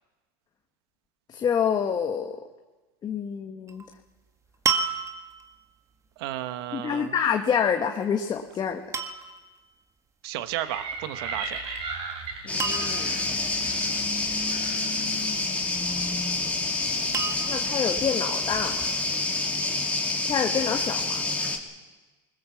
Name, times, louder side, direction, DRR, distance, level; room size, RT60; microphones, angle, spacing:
voice 1, 1.3-2.4 3.0-3.8 6.7-8.8 12.4-13.1 17.5-18.8 20.2-21.2, left 7 dB, 30° left, 4 dB, 1.5 m, -27 dB
sound 1, 3.7-3.9 4.7-5.5 8.0-8.3 8.9-9.5 11.4-11.8 12.1-12.2 12.6-13.3 15.6-16.2 17.1-17.8 18.5-18.6, right 6 dB, 25° right, 1.7 m, -30 dB
voice 2, 6.2-7.1 10.2-11.9 16.8-17.8, right 13 dB, 75° right, 11 dB, 1.4 m, -35 dB
sound 2, 10.5-15.3, right 4 dB, 50° right, 4.9 m, -37 dB
sound 3, 12.5-21.6, left 3 dB, 10° left, 2.9 m, -28 dB
21.5 x 20.5 x 7.3 m, 1.2 s
supercardioid pair, 110°, 13 cm